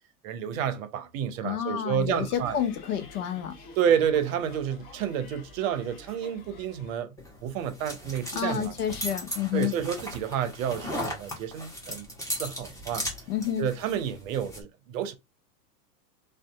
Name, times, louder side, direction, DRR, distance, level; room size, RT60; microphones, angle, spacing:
voice 1, 0.2-2.6 3.8-7.1 7.4-8.7 9.5-12.1 12.3-13.1 13.6-15.1, right 9 dB, 55° right, 0.7 m, -29 dB
voice 2, 1.4-3.6 8.3-9.7 13.3-13.7, left 10 dB, 70° left, 0.7 m, -29 dB
sound 1, 2.0-7.0, left 3 dB, 20° left, 0.3 m, -49 dB
sound 2, 7.2-14.6, equal, 5° left, 0.9 m, -37 dB
2.6 x 2.4 x 2.3 m
hypercardioid pair, 100°, 47 cm